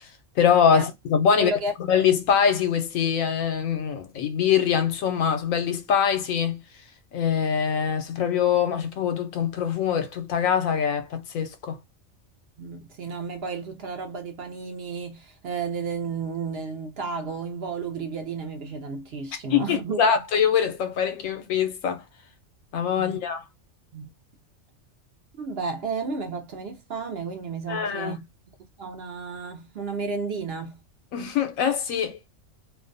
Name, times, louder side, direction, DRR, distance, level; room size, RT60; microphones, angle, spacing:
voice 1, 0.4-1.5 1.9-6.6 7.1-11.8 19.5-22.0 22.7-23.4 27.7-28.1 31.1-32.2, left 7 dB, 85° left, 1.0 m, -23 dB
voice 2, 1.3-1.7 12.6-20.0 23.0-23.2 23.9-24.1 25.4-28.3 28.8-30.8, right 4 dB, 60° right, 0.7 m, -32 dB
2.5 x 2.1 x 2.5 m
omnidirectional pair, 1.4 m